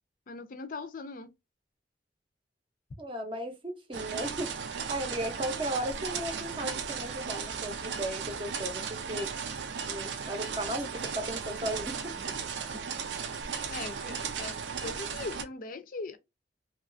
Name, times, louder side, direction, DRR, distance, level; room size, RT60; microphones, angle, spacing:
voice 1, 0.3-1.3 13.7-16.2, left 3 dB, 50° left, 0.4 m, -40 dB
voice 2, 3.0-9.3 9.9-12.3, right 1 dB, 30° right, 0.6 m, -36 dB
sound 1, 3.9-15.4, right 6 dB, 85° right, 0.5 m, -36 dB
3.0 x 2.3 x 2.5 m
head